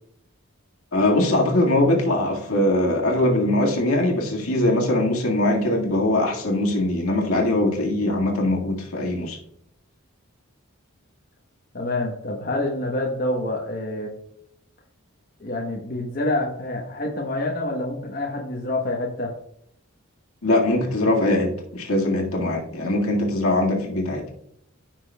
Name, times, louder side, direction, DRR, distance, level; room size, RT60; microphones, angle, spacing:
voice 1, 0.9-9.4 20.4-24.3, left 1 dB, 80° left, 0 dB, 1.8 m, -21 dB
voice 2, 11.7-14.1 15.4-19.3, left 2 dB, 40° left, -1 dB, 1.0 m, -27 dB
14.5 x 6.0 x 2.3 m, 0.72 s
head